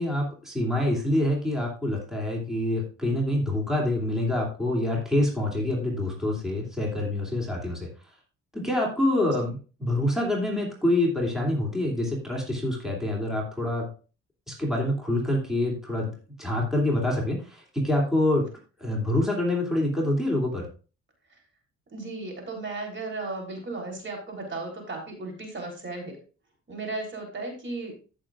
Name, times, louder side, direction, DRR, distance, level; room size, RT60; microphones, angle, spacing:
voice 1, 0.0-7.9 8.5-13.9 14.5-18.5 18.8-20.7, left 1 dB, ahead, -2 dB, 2.8 m, -26 dB
voice 2, 21.9-26.2 26.7-27.9, right 3 dB, 40° right, 1 dB, 3.7 m, -35 dB
14.5 x 6.5 x 2.5 m, 0.35 s
cardioid pair, 90°, 30 cm